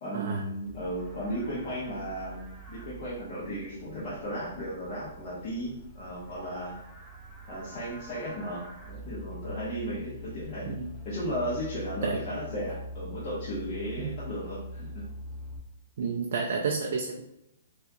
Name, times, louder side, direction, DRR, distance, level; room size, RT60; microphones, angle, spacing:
voice 1, 0.0-2.4 2.7-6.8 7.5-10.7 11.0-15.0, equal, 30° left, -9 dB, 0.8 m, -35 dB
Livestock farm animals working animals, 0.7-15.6, equal, 5° right, 0.5 m, -44 dB
voice 2, 16.0-17.2, right 5 dB, 55° right, 2 dB, 0.4 m, -30 dB
4.1 x 2.4 x 2.7 m, 0.84 s
hypercardioid pair, 170°, 0 cm